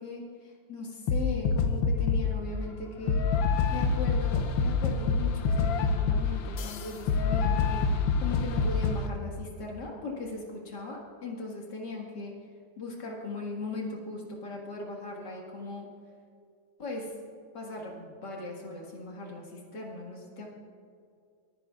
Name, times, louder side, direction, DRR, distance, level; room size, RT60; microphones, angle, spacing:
voice 1, 0.0-3.3 3.7-12.3 12.8-15.9 16.8-17.1 17.5-20.5, left 3 dB, 65° left, -1 dB, 2.4 m, -38 dB
sound 1, 1.1-2.4 3.1-9.1, left 5 dB, 80° left, 1.5 m, -26 dB
23.5 x 9.7 x 2.4 m, 2.3 s
omnidirectional pair, 2.1 m